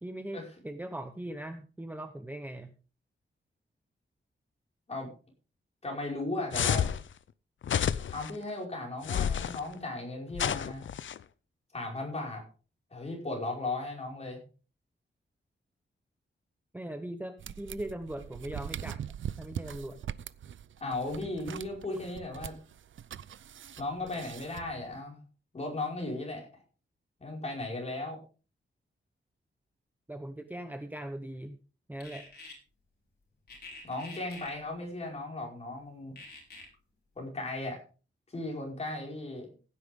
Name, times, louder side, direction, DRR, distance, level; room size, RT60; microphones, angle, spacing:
voice 1, 0.0-2.7 16.7-19.0 19.4-20.0 30.1-31.6 31.9-32.3, right 1 dB, 10° right, 8 dB, 0.8 m, -40 dB
voice 2, 5.8-6.9 8.1-10.9 11.7-12.4 12.9-14.4 20.8-22.6 23.8-25.2 25.5-26.5 27.2-28.2 33.8-36.1 37.2-37.8 38.3-39.5, left 2 dB, 30° left, -1 dB, 5.2 m, -36 dB
sound 1, 6.5-7.0 7.6-8.3 9.0-9.6 10.3-11.2, left 9 dB, 70° left, 0.6 m, -29 dB
sound 2, 17.4-25.0, right 9 dB, 75° right, 0.5 m, -42 dB
sound 3, 32.0-32.5 33.5-34.5 36.2-36.7, left 3 dB, 55° left, 5.2 m, -47 dB
16.0 x 9.8 x 3.6 m, 0.36 s
wide cardioid pair, 165°, 20 cm